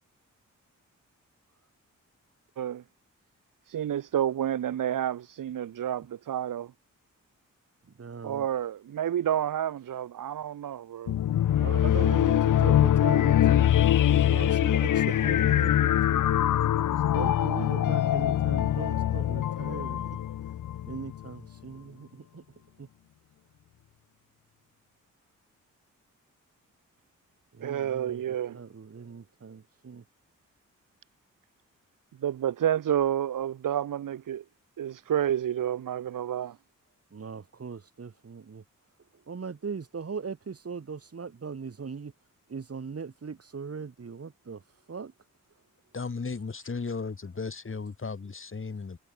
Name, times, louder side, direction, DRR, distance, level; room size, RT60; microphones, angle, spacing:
voice 1, 3.7-6.7 8.2-11.1 27.6-28.6 32.2-34.4 34.8-36.6, right 10 dB, 85° right, 3.2 m, -29 dB
voice 2, 8.0-8.5 11.5-13.7 14.1-16.2 16.9-20.2 20.9-22.4 22.8-22.9 27.5-28.2 28.5-30.0 37.1-38.6 39.1-42.1 42.5-44.6 44.9-45.1, right 5 dB, 50° right, 6.4 m, -39 dB
sound 1, 11.1-21.3, left 11 dB, 75° left, 1.0 m, -23 dB
voice 3, 45.9-49.0, left 4 dB, 40° left, 6.0 m, -35 dB
cardioid pair, 80°, 31 cm